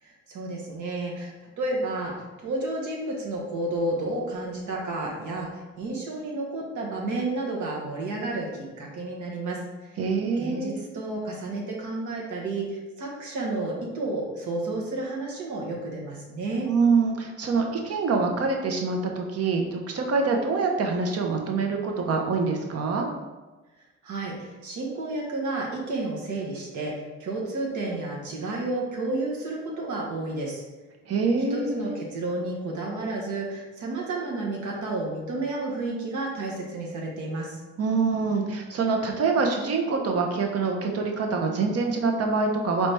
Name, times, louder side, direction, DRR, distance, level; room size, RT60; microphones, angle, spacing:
voice 1, 0.0-9.9 10.4-16.7 24.0-26.9 27.2-30.6 31.5-37.6, right 2 dB, 75° right, -3 dB, 1.0 m, -31 dB
voice 2, 10.0-10.8 16.7-23.1 31.1-31.9 37.8-42.9, right 4 dB, 55° right, 2 dB, 0.8 m, -25 dB
4.0 x 3.3 x 3.3 m, 1.2 s
cardioid pair, 90°, 30 cm